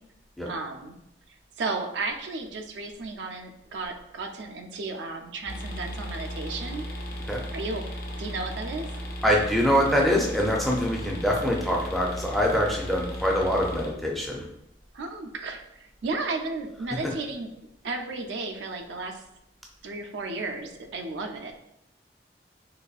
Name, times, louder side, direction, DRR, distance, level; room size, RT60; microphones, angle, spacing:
voice 1, 0.5-1.0 1.6-6.9 7.5-7.8 8.2-8.9 14.9-17.5 17.8-19.2 19.8-21.5, right 3 dB, 80° right, 4 dB, 0.4 m, -34 dB
sound 1, 5.5-13.9, equal, 55° left, 0.7 m, -36 dB
voice 2, 9.2-14.4, equal, ahead, -2 dB, 0.4 m, -24 dB
4.1 x 3.0 x 2.3 m, 0.82 s
head